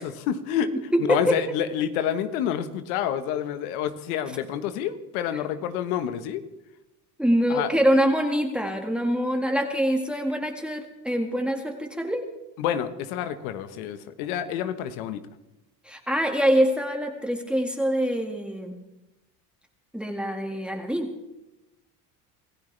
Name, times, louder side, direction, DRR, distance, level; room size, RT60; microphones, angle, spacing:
voice 1, 0.0-0.7 1.0-6.4 7.5-7.7 12.6-15.2, left 9 dB, 80° left, 10 dB, 1.3 m, -28 dB
voice 2, 0.9-1.4 5.3-5.4 7.2-12.3 15.8-18.8 19.9-21.1, equal, ahead, 3 dB, 2.0 m, -24 dB
26.5 x 15.0 x 3.4 m, 0.97 s
supercardioid pair, 85°, 43 cm